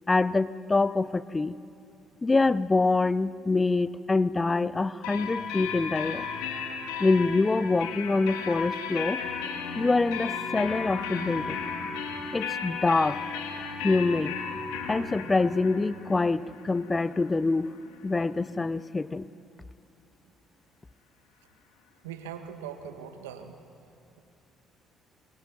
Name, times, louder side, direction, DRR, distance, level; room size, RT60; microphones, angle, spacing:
voice 1, 0.1-1.6 2.2-6.3 7.0-9.2 9.8-11.6 12.3-13.2 13.8-14.4 14.9-17.7 18.0-19.3, left 3 dB, 25° left, 17 dB, 0.7 m, -25 dB
sound 1, 5.0-18.6, left 6 dB, 80° left, 2.4 m, -35 dB
voice 2, 22.0-23.6, right 8 dB, 85° right, 6 dB, 1.7 m, -40 dB
22.5 x 22.0 x 9.3 m, 2.7 s
hypercardioid pair, 55°, 0 cm